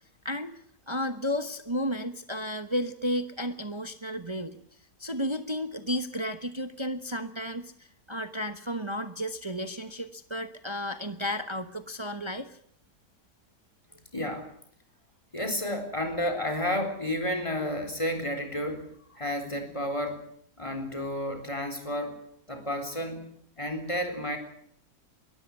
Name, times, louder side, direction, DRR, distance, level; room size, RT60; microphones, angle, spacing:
voice 1, 0.9-4.6 5.0-7.7 8.1-12.5, equal, 20° right, 10 dB, 0.9 m, -32 dB
voice 2, 14.1-14.5 15.3-20.2 20.6-22.2 22.5-23.3 23.6-24.4, left 1 dB, 15° left, 5 dB, 4.0 m, -31 dB
22.0 x 14.0 x 9.8 m, 0.64 s
omnidirectional pair, 1.8 m